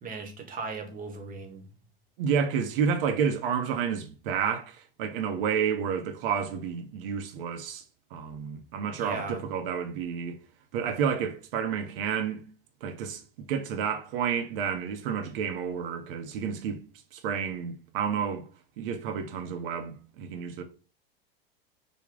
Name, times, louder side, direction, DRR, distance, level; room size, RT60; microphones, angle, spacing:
voice 1, 0.0-1.7 9.0-9.4, right 4 dB, 30° right, 0.9 m, -37 dB
voice 2, 2.2-7.8 8.1-10.4 10.7-12.4 12.8-16.8 17.1-18.4 18.8-20.6, right 7 dB, 65° right, 0.7 m, -30 dB
3.4 x 2.2 x 3.7 m
hypercardioid pair, 100°, 30 cm